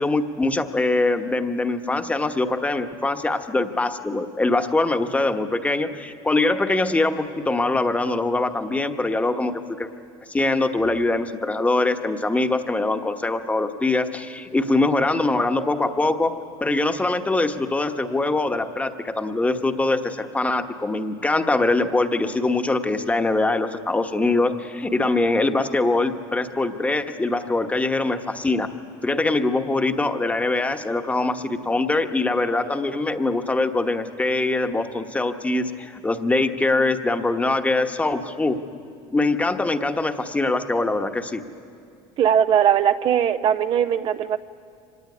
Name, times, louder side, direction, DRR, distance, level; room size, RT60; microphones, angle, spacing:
voice 1, 0.0-9.9 10.3-16.3 16.6-28.7 29.0-38.6 39.1-41.4, left 2 dB, 10° left, 7 dB, 1.2 m, -23 dB
voice 2, 42.2-44.4, right 9 dB, 40° right, 10 dB, 0.6 m, -19 dB
25.0 x 19.0 x 9.8 m, 2.3 s
cardioid pair, 140°, 13 cm